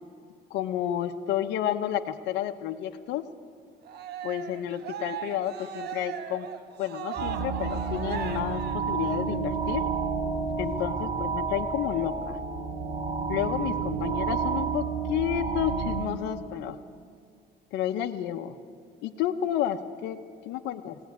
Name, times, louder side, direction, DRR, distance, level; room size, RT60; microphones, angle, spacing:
voice 1, 0.5-3.3 4.2-6.5 6.8-9.8 10.6-12.4 13.3-16.8 17.7-18.5 19.0-20.2 20.4-21.0, left 11 dB, 85° left, 5 dB, 0.9 m, -31 dB
Cheering, 3.9-9.3, right 9 dB, 70° right, 1.5 m, -38 dB
sound 1, 7.2-16.1, right 5 dB, 25° right, 2.5 m, -30 dB
20.5 x 17.5 x 9.5 m, 2.3 s
cardioid pair, 110°, 18 cm